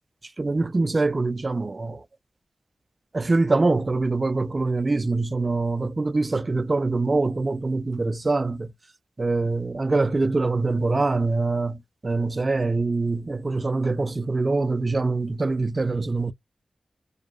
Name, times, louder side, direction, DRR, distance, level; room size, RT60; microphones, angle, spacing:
voice 1, 0.4-2.0 3.1-8.7 9.2-16.3, right 3 dB, 45° right, 0.3 m, -24 dB
2.7 x 2.2 x 2.2 m
cardioid pair, 45°, 0 cm